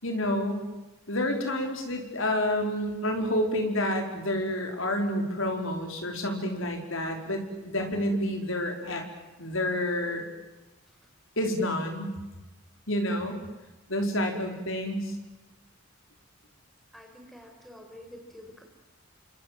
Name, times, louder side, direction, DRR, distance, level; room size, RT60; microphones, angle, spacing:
voice 1, 0.0-0.6 1.1-9.0 9.4-10.2 11.4-12.1 12.9-13.4 13.9-15.1, left 1 dB, 65° left, 4 dB, 5.2 m, -29 dB
voice 2, 16.9-18.6, left 1 dB, ahead, 2 dB, 5.6 m, -48 dB
29.5 x 26.0 x 7.8 m, 1.1 s
head